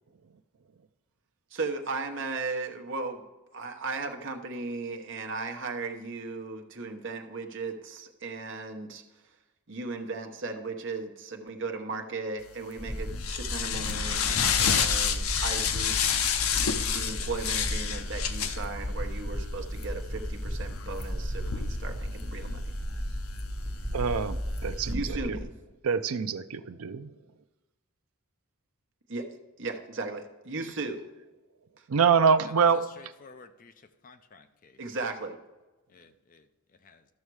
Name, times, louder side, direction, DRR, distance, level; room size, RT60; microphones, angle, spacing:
voice 1, 1.5-3.2 3.5-9.0 9.7-14.2 14.6-16.2 16.9-22.6 24.9-25.5 29.1-31.0 31.8-31.9 34.8-35.4, right 3 dB, 55° right, 4 dB, 1.1 m, -36 dB
sound 1, 12.5-24.9, left 7 dB, 70° left, 0.7 m, -31 dB
sound 2, 12.8-25.4, equal, 20° right, 2.5 m, -35 dB
voice 2, 23.9-25.4 25.8-27.1 31.9-32.9, right 6 dB, 75° right, 11 dB, 0.5 m, -25 dB
voice 3, 33.0-33.7 34.0-34.8 35.9-36.4 36.8-37.0, left 4 dB, 40° left, 9 dB, 0.5 m, -53 dB
13.0 x 6.4 x 4.7 m, 1.1 s
head